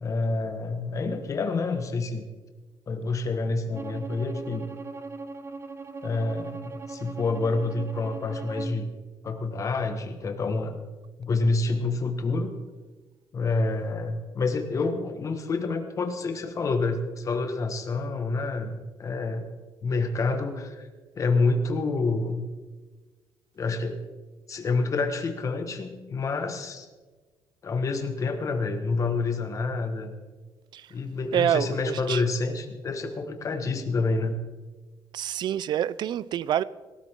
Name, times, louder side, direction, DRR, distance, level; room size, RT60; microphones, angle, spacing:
voice 1, 0.0-2.2 2.9-4.7 6.0-8.9 9.2-10.8 11.2-12.5 13.3-19.5 19.8-20.9 21.1-22.5 23.5-24.0 24.5-26.9 27.6-30.1 30.9-34.4, left 3 dB, 40° left, 1.6 m, -28 dB
Bowed string instrument, 3.7-8.8, right 3 dB, 30° right, 0.8 m, -39 dB
voice 2, 31.3-32.2 35.1-36.6, right 10 dB, 60° right, 0.4 m, -27 dB
18.0 x 13.0 x 3.7 m
cardioid pair, 125°, 9 cm